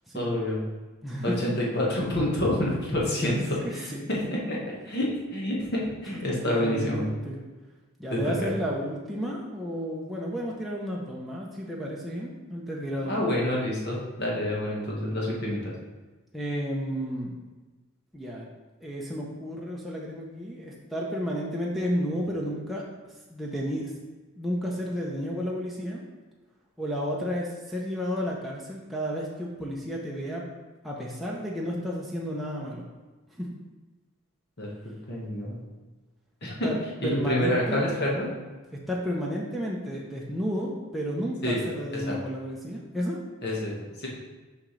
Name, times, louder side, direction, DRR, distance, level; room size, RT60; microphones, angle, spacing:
voice 1, 0.1-0.6 1.2-4.6 4.8-7.0 8.1-8.2 13.0-15.7 34.6-34.7 35.1-35.6 36.4-36.7 37.0-38.3 41.4-41.6 41.9-42.2 43.4-44.1, left 1 dB, 50° left, -3 dB, 1.4 m, -28 dB
voice 2, 1.0-1.5 3.2-4.1 6.1-7.4 8.0-13.3 16.3-17.3 18.1-18.5 18.8-22.8 23.3-23.9 24.4-26.0 26.8-30.4 30.8-32.9 33.4-33.5 36.6-37.8 38.9-43.2, equal, ahead, -4 dB, 0.7 m, -32 dB
6.3 x 5.1 x 3.2 m, 1.3 s
head